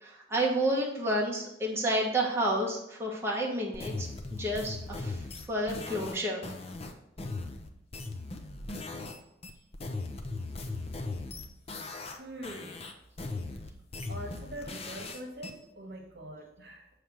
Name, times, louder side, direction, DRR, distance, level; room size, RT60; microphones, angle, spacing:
voice 1, 0.0-5.2 5.5-6.4, right 1 dB, 15° right, -3 dB, 1.1 m, -30 dB
sound 1, 3.7-9.2 9.4-12.2 12.4-15.5, left 3 dB, 35° left, 0.7 m, -38 dB
voice 2, 12.2-12.9 14.1-16.9, right 1 dB, 65° right, 3 dB, 1.2 m, -43 dB
7.1 x 3.3 x 6.1 m, 0.83 s
head